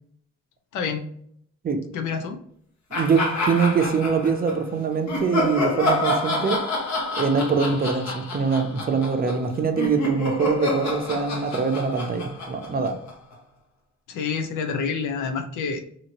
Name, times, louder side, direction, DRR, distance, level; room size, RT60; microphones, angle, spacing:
voice 1, 0.7-1.1 1.9-2.4 14.1-15.8, left 5 dB, 85° left, 7 dB, 0.6 m, -28 dB
sound 1, 2.9-4.6 5.1-13.3, left 1 dB, 65° left, 1.0 m, -28 dB
voice 2, 2.9-6.6 7.2-13.0, right 5 dB, 30° right, 6 dB, 0.5 m, -23 dB
2.8 x 2.7 x 2.9 m, 0.65 s
cardioid pair, 90°, 30 cm